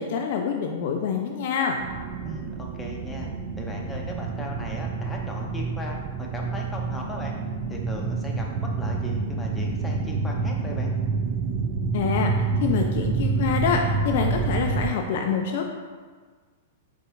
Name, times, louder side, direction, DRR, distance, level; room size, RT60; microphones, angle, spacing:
voice 1, 0.0-1.8 11.9-15.6, left 6 dB, 50° left, 2 dB, 0.3 m, -26 dB
sound 1, 1.8-14.9, right 4 dB, 40° right, 0.3 m, -28 dB
voice 2, 2.2-7.3 7.7-10.9, left 1 dB, 10° left, -2 dB, 0.8 m, -37 dB
sound 2, 6.8-13.2, equal, 25° right, 1.0 m, -45 dB
4.1 x 3.4 x 3.6 m, 1.5 s
figure-of-eight pair, 100°, 0 cm